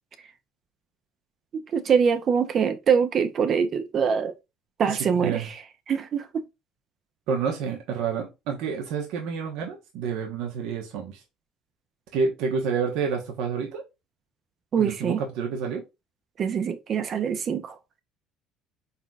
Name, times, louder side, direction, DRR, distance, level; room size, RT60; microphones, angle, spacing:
voice 1, 1.7-4.3 4.8-5.5 5.9-6.3 14.7-15.2 16.4-17.8, right 6 dB, 50° right, 0.6 m, -24 dB
voice 2, 4.9-5.5 7.3-11.2 12.1-13.8 14.7-15.8, right 6 dB, 75° right, 1.1 m, -29 dB
4.2 x 3.9 x 2.4 m
supercardioid pair, 80°, 0 cm